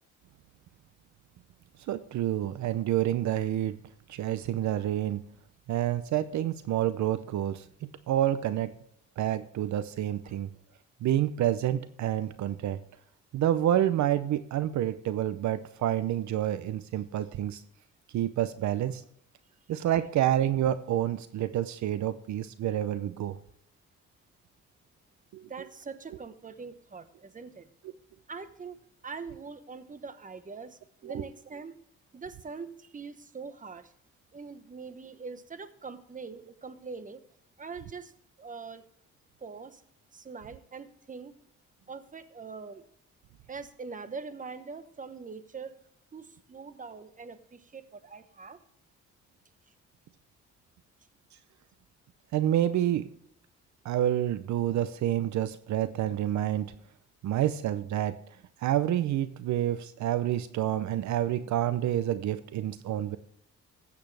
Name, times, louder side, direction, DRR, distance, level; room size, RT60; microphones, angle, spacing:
voice 1, 1.9-3.8 4.1-5.2 5.7-8.7 9.2-10.5 11.0-12.8 13.3-17.6 18.1-19.0 19.7-23.4 25.3-25.5 31.0-31.2 52.3-53.1 53.8-56.7 57.2-58.2 58.6-63.2, right 12 dB, 70° right, 13 dB, 0.6 m, -28 dB
voice 2, 25.5-27.7 28.3-31.8 32.1-33.9 34.3-37.2 37.6-38.1 38.4-38.8 39.4-39.8 40.1-41.3 41.9-42.9 43.5-45.8 46.1-48.6, right 5 dB, 25° right, 11 dB, 1.1 m, -43 dB
14.5 x 8.3 x 3.3 m, 0.72 s
cardioid pair, 90°, 30 cm